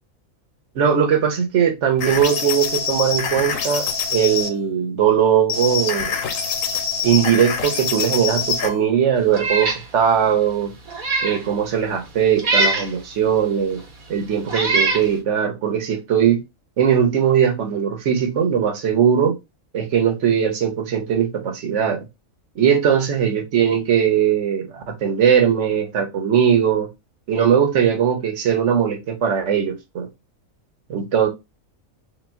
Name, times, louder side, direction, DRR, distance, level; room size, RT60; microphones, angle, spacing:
voice 1, 0.7-6.1 7.0-10.7 11.2-13.8 14.1-16.4 16.8-19.4 19.7-22.0 22.6-26.9 27.3-30.1 30.9-31.3, right 8 dB, 60° right, 1.2 m, -19 dB
sound 1, 2.0-4.5 5.5-8.8, left 6 dB, 70° left, 1.1 m, -25 dB
Meow, 9.3-9.8 10.3-10.4 10.9-11.4 12.4-12.9 13.8-13.9 14.5-15.1, right 2 dB, 80° right, 1.5 m, -21 dB
3.4 x 3.1 x 3.4 m
omnidirectional pair, 1.4 m